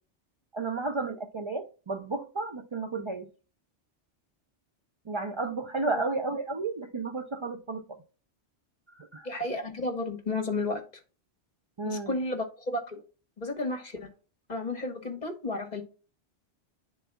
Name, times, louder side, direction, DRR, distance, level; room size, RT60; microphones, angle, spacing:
voice 1, 0.5-3.3 5.1-8.0 8.9-9.3 11.8-12.1, right 3 dB, 45° right, 0.4 m, -32 dB
voice 2, 9.2-10.8 11.8-13.0 13.4-14.1 14.5-15.8, left 2 dB, 40° left, 1.3 m, -32 dB
11.0 x 4.0 x 2.2 m
omnidirectional pair, 1.2 m